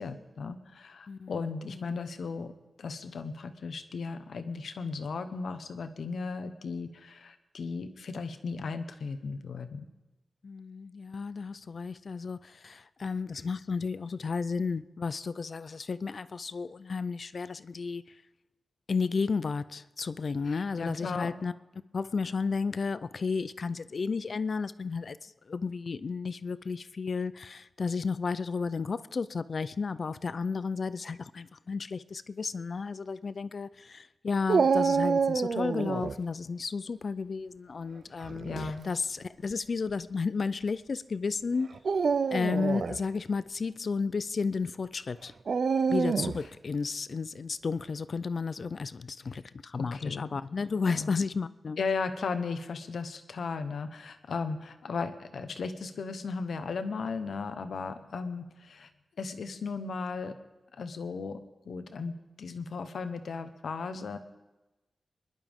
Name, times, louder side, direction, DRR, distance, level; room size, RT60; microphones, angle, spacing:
voice 1, 0.0-2.5 2.8-9.8 20.5-21.3 38.1-38.9 49.7-50.3 50.8-51.2 51.8-58.9 59.2-60.4 60.7-61.4 61.6-64.2, left 4 dB, 75° left, 1.0 m, -36 dB
voice 2, 1.1-1.9 10.4-18.0 18.9-21.5 21.9-41.7 42.3-45.3 45.9-51.8, left 4 dB, 45° left, 0.4 m, -33 dB
Dog, 34.5-36.2 38.2-38.7 39.5-39.6 41.7-43.0 45.5-46.5, right 5 dB, 60° right, 0.4 m, -27 dB
26.0 x 11.0 x 3.6 m
wide cardioid pair, 165°, 0 cm